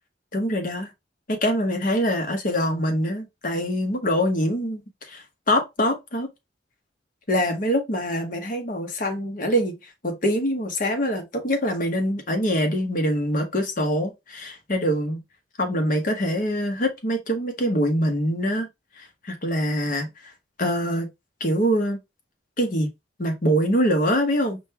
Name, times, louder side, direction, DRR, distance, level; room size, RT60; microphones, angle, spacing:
voice 1, 0.3-0.9 1.4-6.3 7.3-9.7 10.0-15.2 15.6-18.7 19.0-20.1 20.6-21.1 21.4-22.0 22.6-22.9 23.2-24.6, equal, 45° left, 1.0 m, -24 dB
5.2 x 2.3 x 2.9 m
head